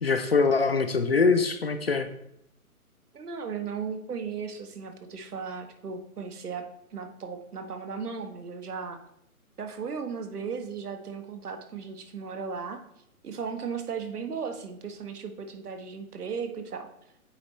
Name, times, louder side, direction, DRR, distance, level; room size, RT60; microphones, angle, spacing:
voice 1, 0.0-2.1, left 4 dB, 45° left, 8 dB, 0.4 m, -23 dB
voice 2, 3.1-6.7 6.9-9.0 9.6-12.8 13.2-16.9, right 6 dB, 85° right, 6 dB, 1.2 m, -36 dB
8.5 x 3.0 x 4.2 m, 0.76 s
hypercardioid pair, 165°, 45 cm